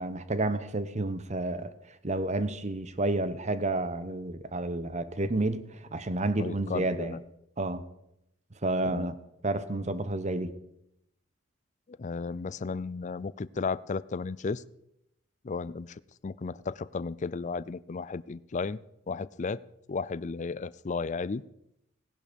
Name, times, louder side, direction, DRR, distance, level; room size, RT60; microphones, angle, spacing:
voice 1, 0.0-1.7 2.0-5.6 5.9-7.2 7.6-7.8 8.6-9.2 9.4-10.5, right 2 dB, 35° right, 12 dB, 0.9 m, -30 dB
voice 2, 6.4-7.2 8.8-9.1 11.9-14.6 15.4-18.8 19.1-19.6 19.9-21.4, left 4 dB, 35° left, 18 dB, 0.4 m, -34 dB
18.5 x 11.0 x 5.3 m, 0.82 s
head